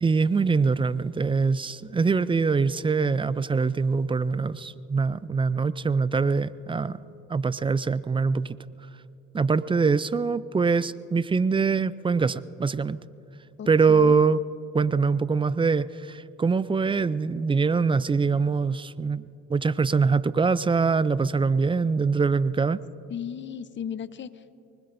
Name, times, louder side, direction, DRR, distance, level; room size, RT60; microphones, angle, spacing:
voice 1, 0.0-7.0 7.3-8.6 9.3-13.0 13.7-14.4 14.7-22.8, right 4 dB, 15° right, 0.4 m, -23 dB
voice 2, 13.6-14.2 23.1-24.5, left 8 dB, 35° left, 0.7 m, -36 dB
24.5 x 20.5 x 2.6 m
supercardioid pair, 75°, 32 cm